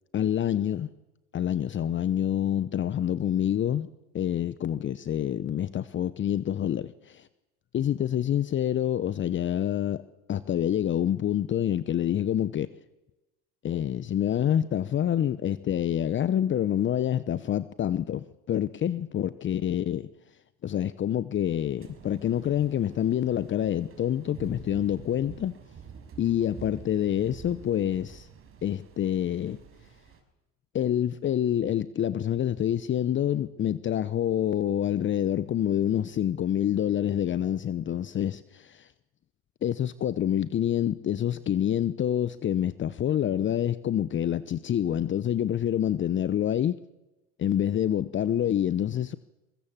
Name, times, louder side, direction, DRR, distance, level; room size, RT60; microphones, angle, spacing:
voice 1, 0.1-0.9 1.3-3.9 4.1-7.3 7.7-10.0 10.3-12.7 13.6-20.1 20.6-25.5 26.2-28.3 28.6-29.6 30.7-38.9 39.6-46.8 47.4-49.2, left 10 dB, 35° left, 0.9 m, -27 dB
sound 1, 21.8-30.2, right 7 dB, 40° right, 5.2 m, -48 dB
23.0 x 23.0 x 7.5 m
supercardioid pair, 95°, 35 cm